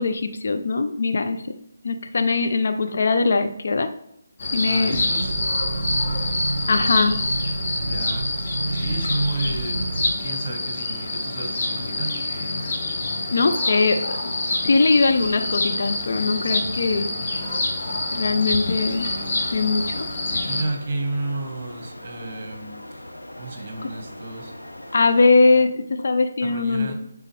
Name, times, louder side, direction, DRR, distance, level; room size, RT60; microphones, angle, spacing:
voice 1, 0.0-1.4 1.8-3.9 4.5-5.0 6.7-7.2 13.3-14.4 14.6-17.1 18.1-19.1 19.5-20.1 24.9-26.9, left 3 dB, 50° left, 7 dB, 0.5 m, -21 dB
sound 1, 4.4-20.6, left 2 dB, 35° left, 1.2 m, -27 dB
voice 2, 4.7-5.3 7.9-8.3 8.7-12.1 20.5-23.0 23.4-24.5 26.4-26.9, right 2 dB, 35° right, 3 dB, 1.4 m, -32 dB
sound 2, 4.9-10.1, right 2 dB, 50° right, 0.7 m, -29 dB
sound 3, 11.0-25.6, left 1 dB, 85° left, 1.0 m, -41 dB
9.6 x 3.7 x 3.3 m, 0.77 s
figure-of-eight pair, 150°, 0 cm